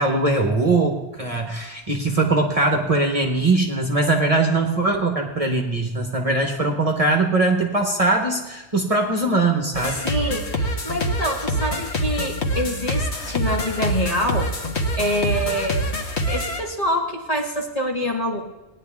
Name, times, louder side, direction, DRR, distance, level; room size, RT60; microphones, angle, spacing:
voice 1, 0.0-10.0, right 2 dB, 35° right, 2 dB, 1.2 m, -21 dB
sound 1, 9.7-16.6, equal, 75° left, 1.6 m, -25 dB
voice 2, 9.9-14.5 14.9-15.9 16.3-18.4, equal, 35° left, -2 dB, 2.0 m, -25 dB
18.5 x 10.0 x 3.6 m, 1.1 s
omnidirectional pair, 1.1 m